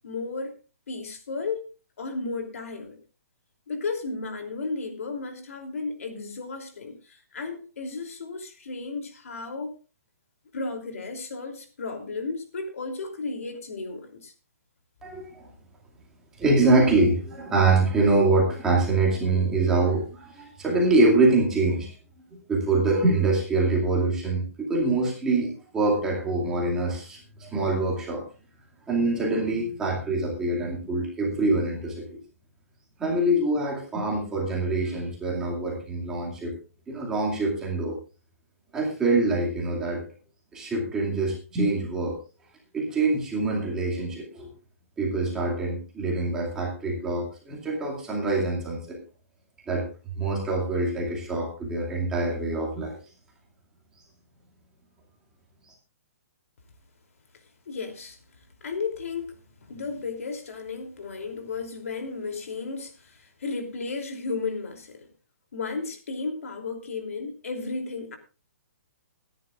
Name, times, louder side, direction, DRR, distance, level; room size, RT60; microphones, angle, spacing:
voice 1, 0.0-0.5 0.9-1.7 2.0-3.0 3.7-9.7 10.5-14.3 57.7-58.2 58.6-59.3 59.6-65.1 65.5-68.2, left 4 dB, 65° left, 5 dB, 3.1 m, -34 dB
voice 2, 15.0-15.5 16.4-21.9 22.5-28.2 28.9-32.2 33.0-36.5 36.9-38.0 38.7-40.0 40.5-42.2 42.7-44.5 45.0-49.0 49.7-49.9 50.2-53.0, right 2 dB, 5° right, -3 dB, 2.3 m, -24 dB
22.0 x 10.5 x 2.5 m, 0.33 s
hypercardioid pair, 175°, 8 cm